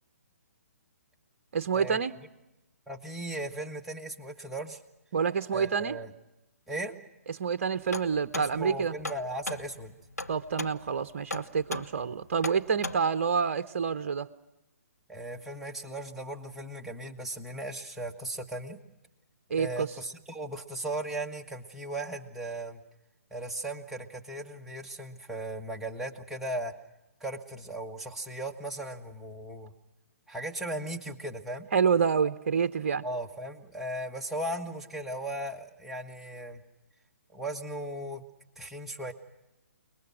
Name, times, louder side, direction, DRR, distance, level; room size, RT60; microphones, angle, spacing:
voice 1, 1.5-2.1 5.1-6.0 7.4-8.9 10.3-14.3 19.5-19.9 31.7-33.0, right 6 dB, 50° right, 11 dB, 0.9 m, -27 dB
voice 2, 2.9-4.8 5.5-6.1 6.7-7.0 8.3-9.9 15.1-18.8 19.6-22.8 23.3-26.7 27.2-29.7 30.3-31.7 33.0-36.6 37.3-38.2 38.6-39.1, right 1 dB, 5° right, -1 dB, 1.6 m, -37 dB
sound 1, 7.9-13.0, left 2 dB, 90° left, 1.1 m, -38 dB
29.0 x 21.0 x 6.3 m, 0.95 s
figure-of-eight pair, 130°, 8 cm